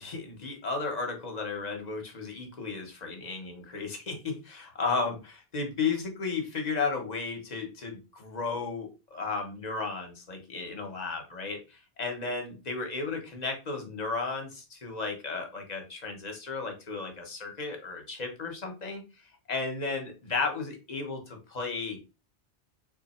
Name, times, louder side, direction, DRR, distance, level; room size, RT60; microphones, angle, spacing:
voice 1, 0.0-22.1, left 4 dB, 40° left, 3 dB, 0.9 m, -34 dB
3.3 x 2.4 x 4.1 m, 0.30 s
omnidirectional pair, 1.1 m